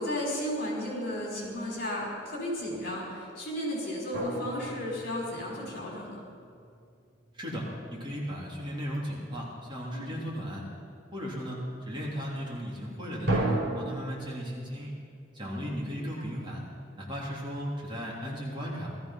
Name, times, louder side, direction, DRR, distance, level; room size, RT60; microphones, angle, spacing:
voice 1, 0.0-6.2 9.9-10.2 15.4-16.1, left 1 dB, 55° left, -3 dB, 5.3 m, -34 dB
sound 1, 4.1-6.2 13.3-13.9, right 2 dB, 55° right, 4.4 m, -31 dB
voice 2, 7.3-10.6 11.1-14.9 15.3-16.6 16.9-18.9, equal, 25° right, -4 dB, 3.1 m, -36 dB
18.0 x 13.5 x 5.7 m, 2.4 s
head